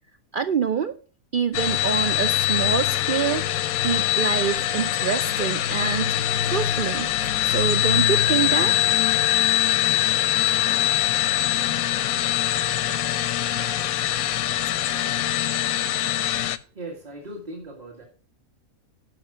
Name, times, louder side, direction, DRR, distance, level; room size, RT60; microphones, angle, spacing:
voice 1, 0.3-0.9 1.3-3.4 3.8-7.1 7.4-8.8, right 7 dB, 70° right, 9 dB, 0.5 m, -26 dB
sound 1, 1.5-16.6, left 11 dB, 85° left, 1.1 m, -23 dB
sound 2, 7.9-15.4, left 14 dB, 65° left, 0.9 m, -35 dB
voice 2, 16.7-18.0, right 1 dB, 30° right, 0 dB, 1.7 m, -38 dB
11.5 x 5.9 x 5.7 m, 0.41 s
omnidirectional pair, 1.5 m